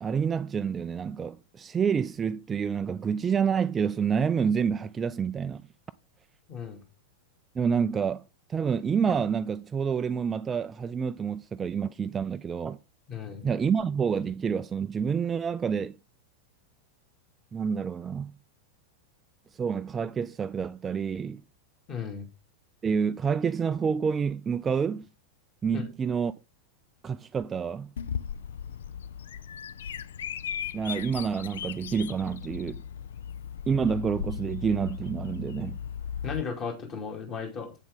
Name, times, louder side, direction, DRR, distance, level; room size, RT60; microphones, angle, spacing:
voice 1, 0.0-5.6 7.6-8.2 8.5-12.8 13.4-15.9 17.5-18.3 19.5-21.4 22.8-25.0 25.6-26.3 27.0-27.9 30.7-32.8 33.7-35.8, right 6 dB, 20° right, 0.3 m, -28 dB
voice 2, 6.5-6.8 13.1-13.4 21.9-22.2 25.7-25.8 36.2-37.7, left 6 dB, 30° left, 2.5 m, -35 dB
Bird vocalization bird call bird song, 28.0-36.4, left 8 dB, 60° left, 0.4 m, -37 dB
8.3 x 7.2 x 3.5 m
figure-of-eight pair, 90°, 0 cm